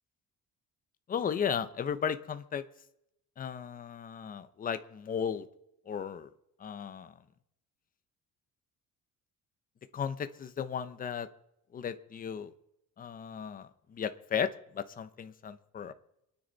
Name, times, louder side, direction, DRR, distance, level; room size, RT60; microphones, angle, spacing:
voice 1, 1.1-2.6 3.4-5.5 5.9-6.3 6.6-7.1 9.9-11.3 11.7-12.5 13.0-15.9, left 7 dB, 30° left, 11 dB, 0.9 m, -35 dB
27.0 x 9.9 x 4.1 m, 0.83 s
cardioid pair, 155°, 30 cm